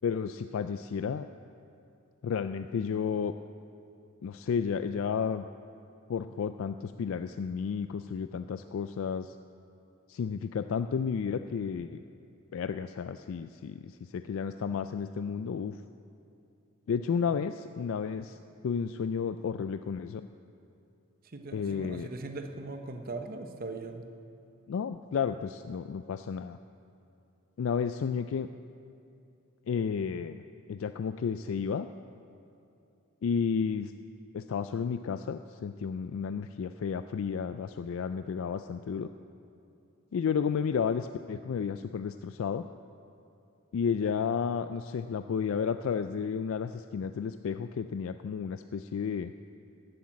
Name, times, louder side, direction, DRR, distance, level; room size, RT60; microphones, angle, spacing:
voice 1, 0.0-1.3 2.2-3.3 4.2-5.4 6.1-9.4 10.1-12.0 12.5-15.8 16.9-18.4 18.6-20.3 21.5-22.1 24.7-26.6 27.6-28.5 29.7-30.4 30.7-31.9 33.2-33.9 34.3-39.1 40.1-42.6 43.7-49.3, left 6 dB, 65° left, 10 dB, 0.3 m, -32 dB
voice 2, 21.2-24.1, right 3 dB, 40° right, 6 dB, 0.8 m, -40 dB
12.5 x 8.1 x 8.6 m, 2.6 s
head